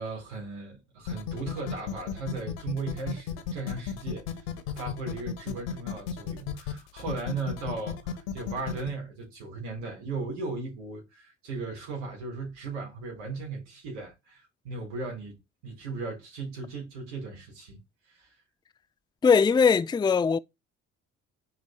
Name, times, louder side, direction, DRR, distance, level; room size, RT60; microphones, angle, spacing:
voice 1, 0.0-4.4 4.7-15.4 15.6-17.8 18.1-18.3, right 3 dB, 75° right, 4.3 m, -37 dB
sound 1, 1.1-8.9, left 9 dB, 75° left, 1.3 m, -34 dB
voice 2, 19.2-20.4, left 5 dB, 15° left, 0.5 m, -20 dB
10.5 x 3.6 x 3.3 m
hypercardioid pair, 55°, 34 cm